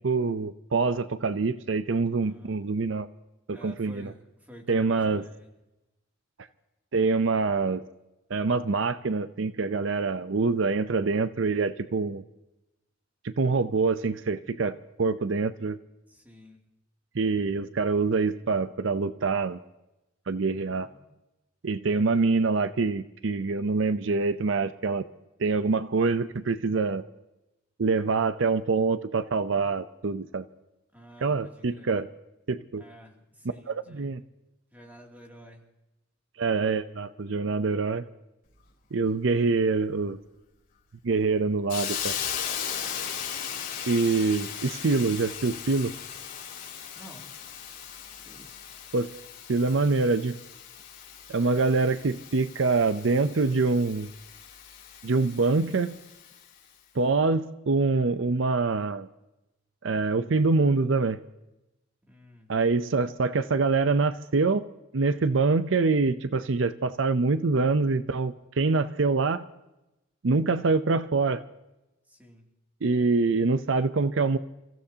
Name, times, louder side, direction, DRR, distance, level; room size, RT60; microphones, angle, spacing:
voice 1, 0.0-3.1 3.5-4.1 4.7-5.2 6.9-7.8 8.3-12.2 13.2-15.8 17.1-19.6 20.3-20.9 21.6-25.0 25.4-27.0 27.8-30.4 31.2-32.1 32.5-32.8 33.7-34.2 36.4-38.0 38.9-40.2 41.0-42.1 43.9-45.9 48.9-49.1 49.5-50.4 51.3-54.1 55.0-56.0 57.0-59.1 59.8-61.2 62.5-64.6 64.9-69.4 70.2-71.4 72.8-74.4, right 4 dB, 70° right, 12 dB, 0.6 m, -25 dB
voice 2, 2.2-2.6 3.5-5.5 16.1-16.6 20.8-21.1 21.9-22.4 30.9-31.9 32.7-34.1 34.7-35.7 46.9-47.3 48.2-48.6 62.0-62.5 72.1-72.5, equal, 10° right, 1 dB, 2.6 m, -50 dB
Hiss, 41.7-56.5, left 8 dB, 45° left, 4.1 m, -38 dB
29.5 x 15.5 x 2.8 m, 0.95 s
head